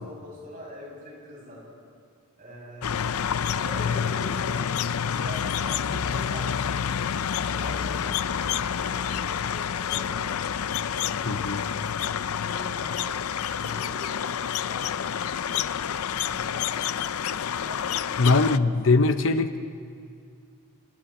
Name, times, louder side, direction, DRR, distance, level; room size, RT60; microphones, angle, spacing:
voice 1, 0.0-1.6 2.4-2.9 3.4-4.5 4.9-6.9 7.4-11.7 12.4-13.1 13.6-14.3 14.6-15.1 15.5-16.0 16.3-16.7 17.6-18.7 19.0-19.1, left 1 dB, 40° right, -3 dB, 7.6 m, -43 dB
sound 1, 2.8-18.6, left 8 dB, 90° left, 0.5 m, -28 dB
voice 2, 11.3-11.6 18.2-19.6, left 3 dB, 60° left, 9 dB, 0.8 m, -21 dB
30.0 x 29.0 x 4.4 m, 2.3 s
head